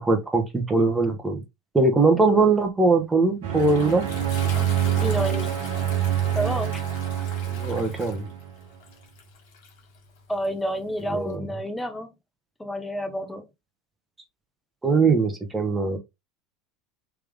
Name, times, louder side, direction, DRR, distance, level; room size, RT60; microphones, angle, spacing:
voice 1, 0.0-1.4 1.7-4.0 7.5-8.3 11.1-11.4 14.8-16.0, right 3 dB, 15° right, 1.3 m, -21 dB
Toilet flush, 3.0-11.3, left 5 dB, 65° left, 1.5 m, -43 dB
sound 1, 3.4-8.5, right 10 dB, 75° right, 1.1 m, -26 dB
voice 2, 5.0-5.5 6.3-6.8 10.3-12.1 12.6-13.4, equal, 10° left, 1.1 m, -29 dB
3.6 x 3.2 x 3.6 m
hypercardioid pair, 80°, 0 cm